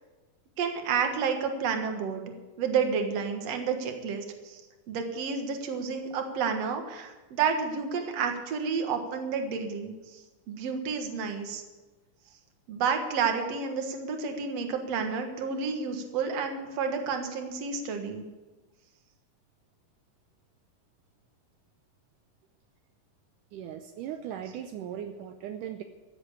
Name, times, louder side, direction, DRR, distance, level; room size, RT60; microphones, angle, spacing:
voice 1, 0.6-2.3 2.6-4.6 4.9-11.6 12.7-18.2, right 6 dB, 55° right, 5 dB, 2.4 m, -30 dB
voice 2, 23.5-25.8, right 9 dB, 80° right, 6 dB, 2.2 m, -38 dB
15.0 x 7.9 x 8.6 m, 1.2 s
omnidirectional pair, 3.8 m